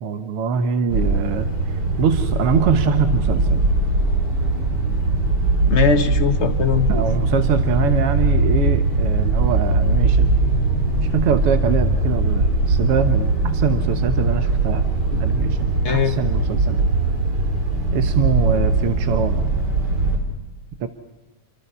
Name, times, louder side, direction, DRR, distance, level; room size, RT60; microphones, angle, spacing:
voice 1, 0.0-1.5 2.0-3.6 6.9-10.4 11.1-16.9 17.9-19.5 20.8-20.9, right 6 dB, 60° right, 8 dB, 1.7 m, -23 dB
sound 1, 0.9-20.2, right 2 dB, 35° right, 4.7 m, -20 dB
voice 2, 5.7-7.0 15.8-16.2, left 7 dB, 35° left, 6 dB, 1.1 m, -20 dB
29.5 x 24.0 x 5.6 m, 1.1 s
omnidirectional pair, 3.3 m